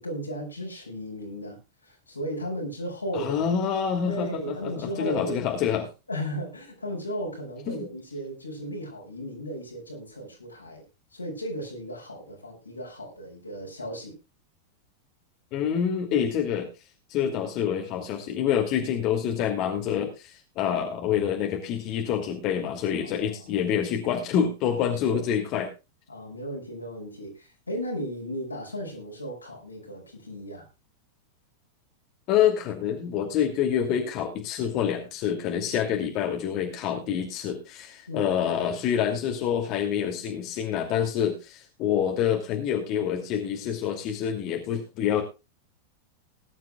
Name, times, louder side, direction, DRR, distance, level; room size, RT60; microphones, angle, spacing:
voice 1, 0.0-1.6 1.8-3.3 4.0-5.4 6.1-10.8 11.1-14.2 23.0-23.4 25.1-25.2 26.1-30.7 38.1-38.3, equal, 80° left, 0 dB, 5.3 m, -35 dB
voice 2, 3.1-5.9 7.7-7.8 15.5-16.7 17.1-25.7 32.3-45.2, left 8 dB, 40° left, 3 dB, 2.5 m, -27 dB
20.0 x 11.0 x 2.3 m, 0.27 s
figure-of-eight pair, 90°, 0 cm